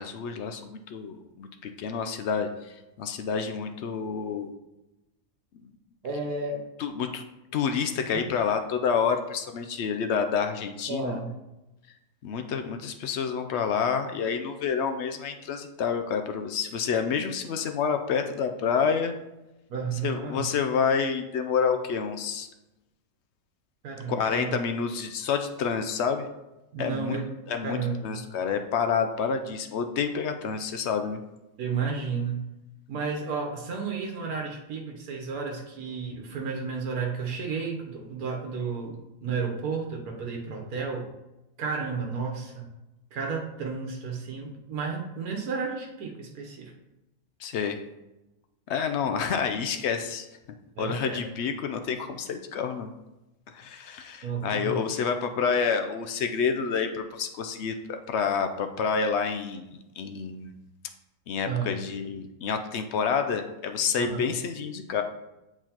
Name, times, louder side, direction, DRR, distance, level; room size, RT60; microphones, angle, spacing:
voice 1, 0.0-4.5 5.6-5.7 6.8-7.2 7.5-11.2 12.2-19.2 20.0-22.5 24.1-26.3 26.8-27.2 27.5-31.2 47.4-47.8 48.7-50.3 50.8-52.9 53.5-60.5 61.3-65.0, left 6 dB, 65° left, 6 dB, 0.7 m, -28 dB
voice 2, 6.0-6.6 8.1-8.2 10.9-11.3 19.7-20.5 23.8-24.6 26.7-27.3 27.6-28.2 31.6-32.4 32.9-39.0 39.2-41.1 41.6-42.7 43.1-46.7 50.8-51.2 54.2-54.9 61.5-61.8 64.0-64.3, right 5 dB, 90° right, 0 dB, 1.4 m, -32 dB
7.7 x 4.6 x 2.9 m, 0.97 s
omnidirectional pair, 1.5 m